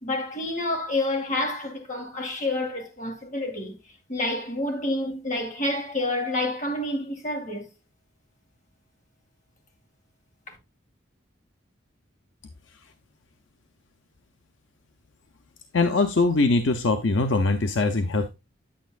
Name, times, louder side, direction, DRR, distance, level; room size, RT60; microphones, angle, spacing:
voice 1, 0.0-3.8 4.1-7.7 10.5-10.6, left 2 dB, 40° left, 2.4 m, -28 dB
voice 2, 15.7-18.3, left 3 dB, 70° left, 0.7 m, -22 dB
9.2 x 8.6 x 2.4 m
head